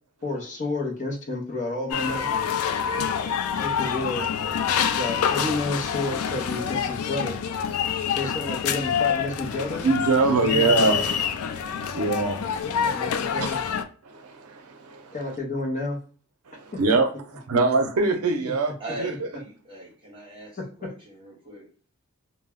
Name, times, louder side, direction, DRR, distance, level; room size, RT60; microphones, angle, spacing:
voice 1, 0.2-2.5 3.6-4.3 5.0-7.4 8.1-9.9 10.4-11.1 12.6-13.6 15.1-16.0 18.4-18.5 20.6-20.9, left 2 dB, 35° left, 0.6 m, -30 dB
sound 1, 1.9-13.8, left 8 dB, 70° left, 0.3 m, -27 dB
voice 2, 9.8-12.9 13.4-13.5 14.0-15.2 16.8-18.7 19.0-19.1, right 3 dB, 80° right, 0.6 m, -24 dB
voice 3, 18.8-21.7, right 1 dB, 25° right, 1.0 m, -40 dB
2.1 x 2.0 x 3.5 m
head